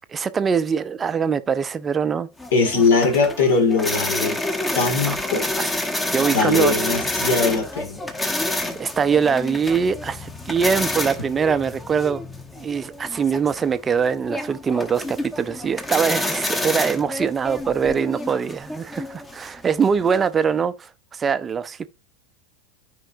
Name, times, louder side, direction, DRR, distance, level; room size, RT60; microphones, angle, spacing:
voice 1, 0.1-2.3 2.7-2.8 5.0-5.3 5.6-5.7 6.1-6.7 8.8-12.2 12.5-21.9, right 6 dB, 20° right, 0.5 m, -23 dB
sound 1, 2.4-20.3, left 1 dB, 10° left, 1.1 m, -29 dB
voice 2, 2.5-4.4 4.7-5.4 6.3-8.0, left 4 dB, 65° left, 2.1 m, -20 dB
13.5 x 4.6 x 2.7 m
figure-of-eight pair, 85°, 0 cm